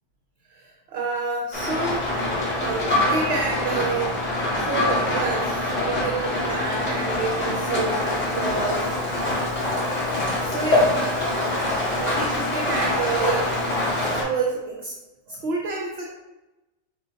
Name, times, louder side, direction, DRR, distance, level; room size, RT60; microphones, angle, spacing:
voice 1, 0.5-2.1 2.6-4.2 4.5-9.0 10.5-11.0 11.9-13.5 14.0-15.0 15.3-16.1, right 4 dB, 60° right, 0 dB, 0.8 m, -29 dB
Rain, 1.5-14.2, left 1 dB, 30° left, 1.6 m, -24 dB
5.3 x 2.5 x 3.8 m, 1.0 s
omnidirectional pair, 1.4 m